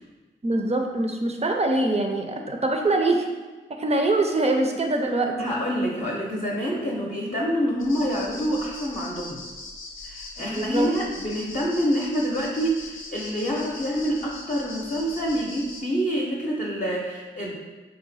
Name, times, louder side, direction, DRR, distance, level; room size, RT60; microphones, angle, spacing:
voice 1, 0.4-3.3 3.7-5.5 10.4-10.9, right 2 dB, 30° right, 3 dB, 0.5 m, -24 dB
voice 2, 5.4-9.4 10.0-17.6, equal, 35° left, -4 dB, 0.7 m, -27 dB
sound 1, 7.8-15.8, left 2 dB, 80° left, 0.6 m, -40 dB
3.8 x 2.1 x 4.0 m, 1.3 s
cardioid pair, 50°, 20 cm